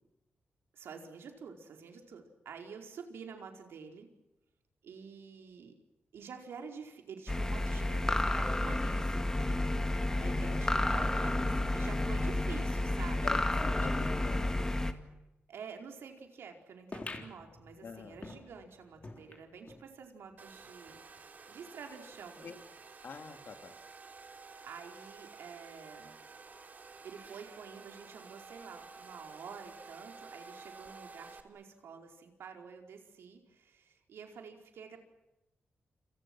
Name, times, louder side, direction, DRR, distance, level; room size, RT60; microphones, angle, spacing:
voice 1, 0.7-4.1 4.8-5.8 6.1-13.5 13.8-13.9 15.5-22.5 24.6-26.1 27.0-35.0, right 6 dB, 90° right, 3 dB, 4.8 m, -49 dB
sound 1, 7.3-14.9, left 1 dB, 15° left, 2.1 m, -31 dB
voice 2, 10.2-10.6 13.2-14.7 17.8-18.2 22.4-22.6 23.0-23.7, left 5 dB, 60° left, 7 dB, 3.0 m, -45 dB
sound 2, 16.9-19.9 20.3-20.4 20.6-20.7 21.5-21.6, left 3 dB, 35° left, 3.7 m, -47 dB
Domestic sounds home sounds, 20.4-31.4, right 4 dB, 45° right, 3.2 m, -52 dB
29.5 x 28.5 x 6.3 m, 0.94 s
wide cardioid pair, 115°, 4 cm